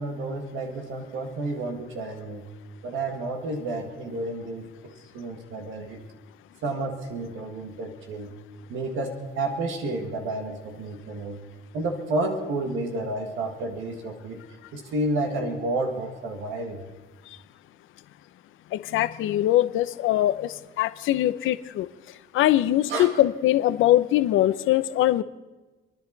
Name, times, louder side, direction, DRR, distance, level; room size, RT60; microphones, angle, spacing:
voice 1, 0.0-2.5 2.8-6.0 6.6-8.3 8.7-11.4 11.7-14.4 14.7-16.8 22.9-23.1, right 2 dB, 85° right, 3 dB, 1.9 m, -31 dB
voice 2, 18.7-21.9 22.3-25.2, left 13 dB, 90° left, 13 dB, 0.8 m, -22 dB
29.0 x 10.5 x 4.1 m, 1.2 s
cardioid pair, 90°, 20 cm